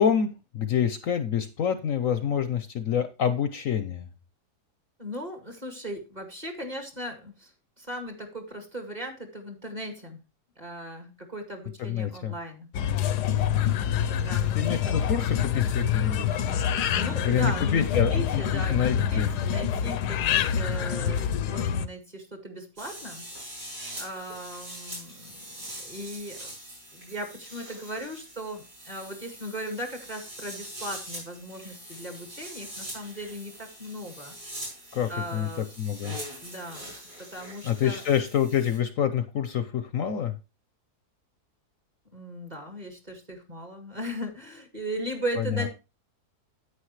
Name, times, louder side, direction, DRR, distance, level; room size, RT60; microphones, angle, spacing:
voice 1, 0.0-4.1 11.8-12.3 14.5-16.4 17.2-19.3 34.9-36.2 37.6-40.3 45.4-45.7, left 8 dB, 60° left, 10 dB, 1.0 m, -27 dB
voice 2, 5.0-7.5 7.8-10.2 10.6-12.7 14.1-15.0 16.9-23.3 24.0-26.5 26.9-34.4 35.1-35.7 36.4-36.9 37.2-38.0 42.1-45.7, equal, 25° right, 4 dB, 2.1 m, -37 dB
sound 1, 12.7-21.9, left 8 dB, 85° left, 1.3 m, -26 dB
sound 2, 22.8-38.8, right 1 dB, 80° right, 6.6 m, -43 dB
9.8 x 8.9 x 3.1 m, 0.28 s
omnidirectional pair, 1.7 m